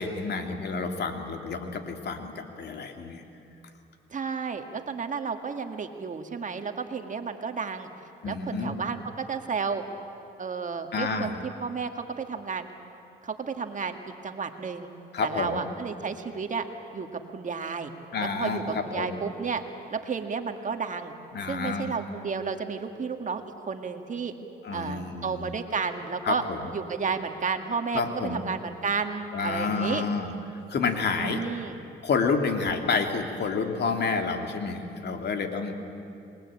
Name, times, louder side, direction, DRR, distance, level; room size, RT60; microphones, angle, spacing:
voice 1, 0.0-3.2 8.2-8.8 10.9-11.4 15.1-15.6 18.1-19.2 21.3-21.9 24.6-25.5 26.2-26.7 27.9-28.4 29.3-31.4 32.0-35.7, left 4 dB, 60° left, 5 dB, 2.7 m, -29 dB
voice 2, 4.1-7.9 8.3-9.8 10.4-12.7 13.2-14.0 14.2-14.9 15.2-16.7 16.9-17.9 18.2-19.6 19.9-21.1 21.5-24.3 24.7-26.4 26.7-30.0 31.2-31.8, right 5 dB, 40° right, 6 dB, 2.0 m, -32 dB
28.0 x 21.5 x 8.7 m, 2.7 s
cardioid pair, 90°, 20 cm